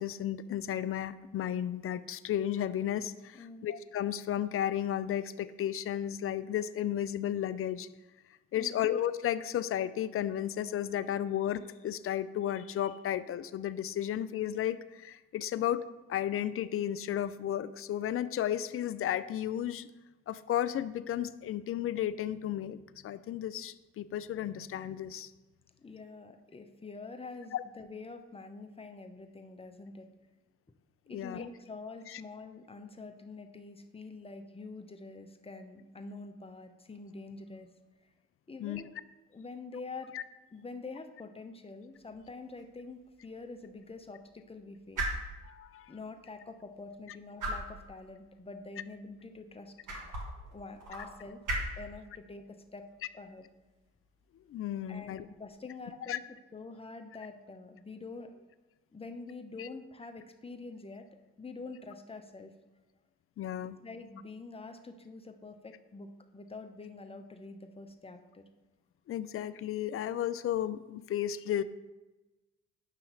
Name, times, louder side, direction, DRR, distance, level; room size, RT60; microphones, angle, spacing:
voice 1, 0.0-7.9 8.5-15.8 16.1-19.9 20.3-25.3 27.5-27.6 31.1-31.5 32.1-32.2 38.6-38.8 40.1-40.2 45.4-45.9 54.5-55.3 56.1-56.2 59.6-59.7 63.4-63.8 69.1-71.6, left 11 dB, 35° left, 14 dB, 0.4 m, -33 dB
voice 2, 3.3-3.7 8.5-8.8 25.8-30.1 31.1-37.7 38.5-38.9 39.3-40.1 40.5-45.1 45.9-49.8 50.5-51.4 51.8-52.9 53.1-53.5 54.9-56.2 56.5-58.4 58.9-61.1 61.4-62.5 63.8-68.4, left 3 dB, 15° left, 6 dB, 0.9 m, -46 dB
sound 1, 41.9-55.5, right 1 dB, 55° right, 1.9 m, -43 dB
7.2 x 5.6 x 4.0 m, 1.1 s
hypercardioid pair, 45°, 37 cm